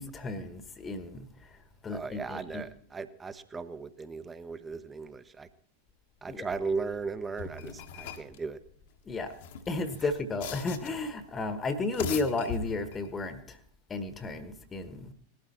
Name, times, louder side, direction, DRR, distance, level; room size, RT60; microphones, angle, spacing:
voice 1, 0.0-1.6 1.8-2.7 6.3-6.5 9.0-9.3 9.7-13.6 13.9-15.1, left 3 dB, 20° left, 11 dB, 1.3 m, -33 dB
voice 2, 1.9-5.5 6.2-8.6, right 4 dB, 15° right, 13 dB, 0.9 m, -37 dB
sound 1, 7.4-8.4 9.3-11.1 11.8-13.1, left 6 dB, 55° left, 1.4 m, -40 dB
19.0 x 12.5 x 4.3 m, 0.62 s
figure-of-eight pair, 90°, 0 cm